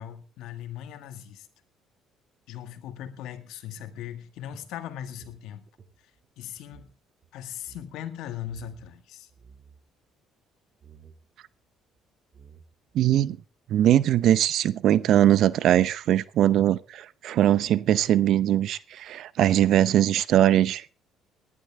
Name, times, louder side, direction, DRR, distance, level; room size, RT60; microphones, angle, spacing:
voice 1, 0.0-1.5 2.5-5.6 6.4-6.9 7.3-9.3, left 10 dB, 75° left, 1.8 m, -39 dB
sound 1, 4.5-7.0 7.2-7.3 7.6-7.9 8.5-8.9 9.3-9.8 10.8-11.2 12.0-12.1 12.3-12.9, right 6 dB, 45° right, 2.4 m, -53 dB
voice 2, 12.9-13.4 13.7-20.8, right 12 dB, 65° right, 0.6 m, -21 dB
19.5 x 11.0 x 3.5 m
supercardioid pair, 75°, 0 cm